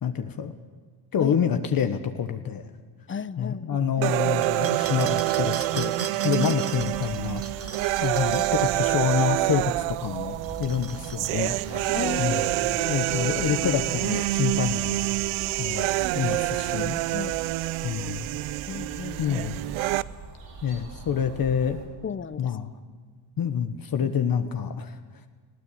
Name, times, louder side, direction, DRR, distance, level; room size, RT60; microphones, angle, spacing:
voice 1, 0.0-0.5 1.1-2.7 3.4-11.9 12.2-12.5 12.9-15.0 15.6-15.9 16.1-17.0 17.8-18.3 19.2-19.6 20.6-21.8 22.4-22.7 23.4-25.0, left 8 dB, 45° left, 7 dB, 1.3 m, -27 dB
voice 2, 3.1-4.1 6.4-6.5 11.7-13.0 13.6-13.8 16.3-16.4 16.7-17.4 18.7-19.4 22.0-22.5 24.0-24.1, left 7 dB, 25° left, 17 dB, 0.7 m, -35 dB
sound 1, 4.0-20.0, right 19 dB, 85° right, 0.6 m, -27 dB
sound 2, 4.4-9.3 10.3-12.8, right 6 dB, 30° right, 1.1 m, -39 dB
sound 3, 6.7-21.9, right 4 dB, 60° right, 5.4 m, -42 dB
19.5 x 16.0 x 8.6 m, 1.5 s
cardioid pair, 95°, 48 cm